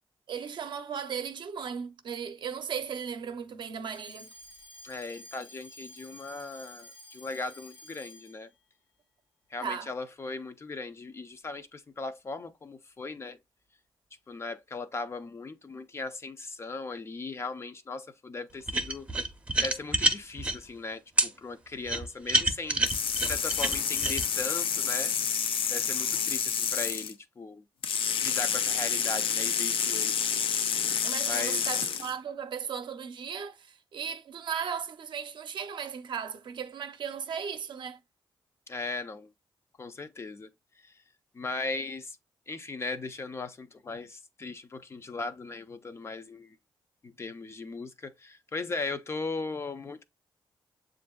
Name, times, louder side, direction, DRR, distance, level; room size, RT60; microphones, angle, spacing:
voice 1, 0.3-4.3 9.6-9.9 31.0-38.0, right 7 dB, 60° right, 0.6 m, -36 dB
Alarm, 3.8-8.5, left 1 dB, 65° left, 1.3 m, -51 dB
voice 2, 4.8-8.5 9.5-13.4 14.3-19.1 19.6-25.1 25.7-27.6 28.2-30.7 31.3-31.6 38.7-39.3 39.8-40.5 40.8-41.0 41.3-42.2 42.5-46.6 47.0-50.0, left 3 dB, 30° left, 0.4 m, -38 dB
sound 1, 18.7-20.6 21.2-21.3 21.9-24.2, right 1 dB, 15° right, 0.6 m, -27 dB
sound 2, 22.8-27.1 27.8-32.1, left 7 dB, 80° left, 0.5 m, -29 dB
7.6 x 2.5 x 2.2 m
wide cardioid pair, 160°, 9 cm